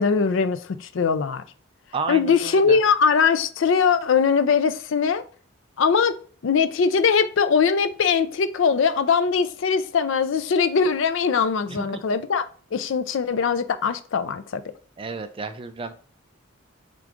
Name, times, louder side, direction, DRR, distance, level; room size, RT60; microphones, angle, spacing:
voice 1, 0.0-1.4 2.1-5.2 5.8-6.2 6.4-12.5 12.7-14.6, left 6 dB, 65° left, 0.4 m, -21 dB
voice 2, 1.9-2.8 11.7-12.0 15.0-15.9, right 4 dB, 25° right, 0.3 m, -32 dB
4.6 x 3.7 x 2.5 m
head